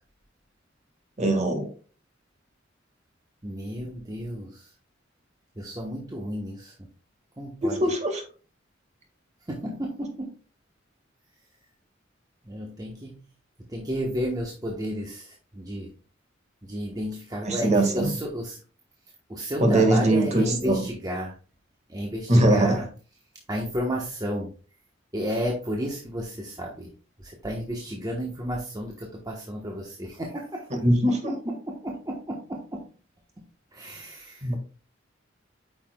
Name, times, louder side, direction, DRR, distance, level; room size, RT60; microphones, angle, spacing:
voice 1, 1.2-1.7 7.6-8.2 17.4-18.1 19.6-20.8 22.3-22.8 30.7-31.5 34.4-34.5, right 1 dB, 40° right, 4 dB, 1.8 m, -21 dB
voice 2, 3.4-4.7 5.6-6.7 7.4-7.8 9.5-10.3 12.4-13.2 13.7-15.9 16.6-18.6 19.3-21.3 21.9-22.9 23.5-24.5 25.1-26.9 27.2-30.7 31.2-31.3 31.7-32.8 33.7-34.5, equal, 20° right, -1 dB, 1.1 m, -32 dB
8.7 x 5.8 x 2.3 m, 0.38 s
head